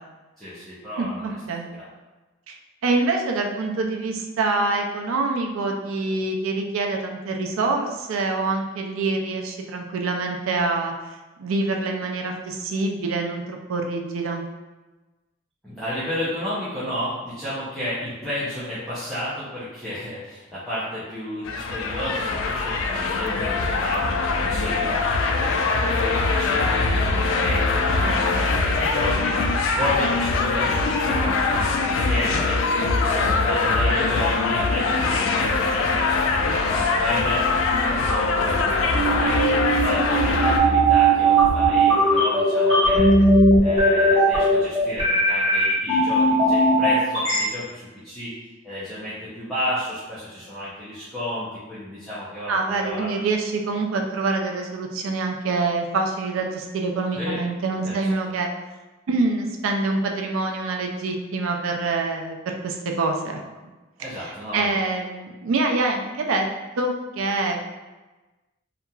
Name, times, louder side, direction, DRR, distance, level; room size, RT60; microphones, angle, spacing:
voice 1, 0.4-1.3 1.8-1.9 15.6-37.4 37.9-43.1 43.6-48.3 48.6-53.1 57.1-57.4 57.8-57.9 64.0-64.7, equal, ahead, -14 dB, 0.6 m, -32 dB
voice 2, 1.0-1.7 2.5-2.6 2.8-10.9 11.4-14.4 28.0-28.6 42.7-43.3 52.5-58.5 59.1-63.4 64.2-66.5 66.8-67.7, right 3 dB, 90° right, 3 dB, 0.4 m, -26 dB
sound 1, 21.4-40.6, left 3 dB, 75° left, 0.3 m, -22 dB
sound 2, 38.9-47.4, right 1 dB, 25° right, 1.1 m, -18 dB
2.8 x 2.4 x 2.2 m, 1.2 s
head